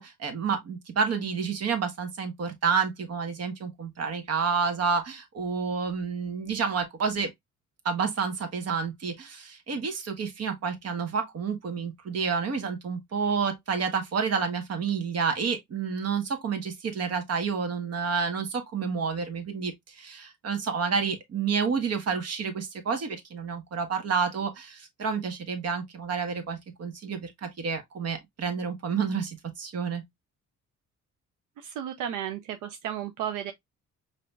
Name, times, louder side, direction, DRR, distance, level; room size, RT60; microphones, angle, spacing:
voice 1, 0.0-7.3 7.8-30.0, right 5 dB, 55° right, 1.2 m, -29 dB
voice 2, 31.6-33.5, right 10 dB, 85° right, 0.6 m, -33 dB
4.9 x 2.9 x 2.2 m
cardioid pair, 90°, 30 cm